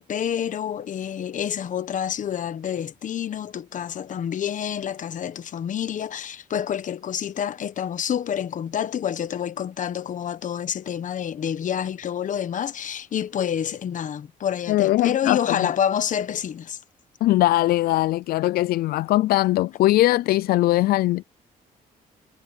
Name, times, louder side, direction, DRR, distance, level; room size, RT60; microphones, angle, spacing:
voice 1, 0.0-16.8, left 9 dB, 55° left, 1.2 m, -28 dB
voice 2, 14.7-15.7 17.2-21.2, left 16 dB, 80° left, 0.4 m, -20 dB
cardioid pair, 100°, 15 cm